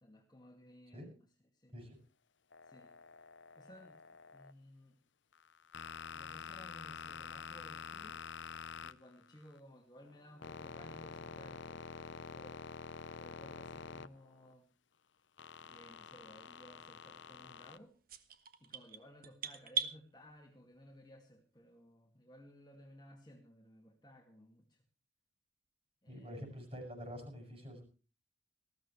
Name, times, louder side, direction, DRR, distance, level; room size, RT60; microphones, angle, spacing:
voice 1, 0.0-1.3 1.5-1.7 2.6-2.9 3.6-4.0 4.3-5.0 6.1-8.2 8.8-12.6 13.2-14.7 15.6-17.9 18.6-24.8 26.0-26.6, equal, 20° left, 2 dB, 2.2 m, -58 dB
sound 1, 2.5-4.5 5.3-9.6 10.0-14.5 15.4-17.8, left 5 dB, 85° left, 0.7 m, -48 dB
sound 2, 18.1-20.0, right 6 dB, 50° right, 1.3 m, -39 dB
voice 2, 26.1-27.8, equal, 30° right, 2 dB, 7.6 m, -47 dB
20.0 x 15.0 x 3.2 m, 0.35 s
head